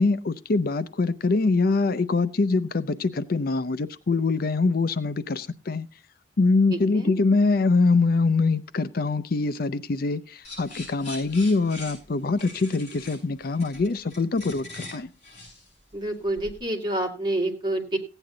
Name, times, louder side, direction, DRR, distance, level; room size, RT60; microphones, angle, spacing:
voice 1, 0.0-5.9 6.4-15.1, left 3 dB, 55° left, 0.5 m, -24 dB
voice 2, 6.7-7.1 15.9-18.0, right 1 dB, 25° right, 2.2 m, -28 dB
sound 1, 10.4-16.6, left 2 dB, 35° left, 7.8 m, -43 dB
16.0 x 9.0 x 3.8 m
head